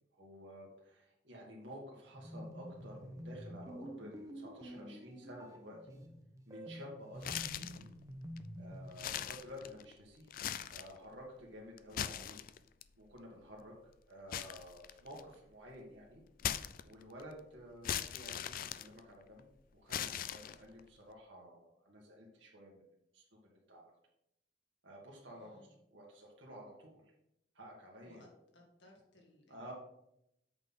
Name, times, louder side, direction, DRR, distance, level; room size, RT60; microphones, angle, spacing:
voice 1, 0.2-6.0 6.5-7.9 8.6-10.3 10.7-12.4 13.0-13.7 14.1-16.2 16.8-19.5 19.7-22.8 23.1-23.8 24.8-27.0 27.6-28.3 29.5-29.7, equal, 80° right, -2 dB, 1.8 m, -52 dB
sound 1, 2.1-9.0, equal, 20° right, 0.9 m, -49 dB
sound 2, 7.2-7.9 8.4-8.5 8.9-9.9 10.3-11.0 11.8-12.8 14.3-15.3 16.4-17.2 17.8-19.4 19.9-20.8, left 10 dB, 50° left, 0.3 m, -40 dB
voice 2, 25.3-25.7 28.0-29.7, left 1 dB, 75° left, 0 dB, 2.1 m, -62 dB
7.9 x 3.9 x 5.7 m, 0.80 s
head